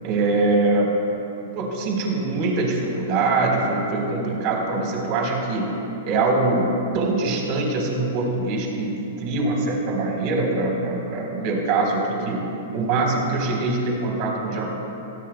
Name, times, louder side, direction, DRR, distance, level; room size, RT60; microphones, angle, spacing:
voice 1, 0.0-0.9 1.5-5.7 6.1-6.7 6.9-12.4 12.7-14.7, right 3 dB, 45° right, 0 dB, 3.8 m, -23 dB
23.0 x 17.0 x 2.2 m, 2.9 s
hypercardioid pair, 115°, 0 cm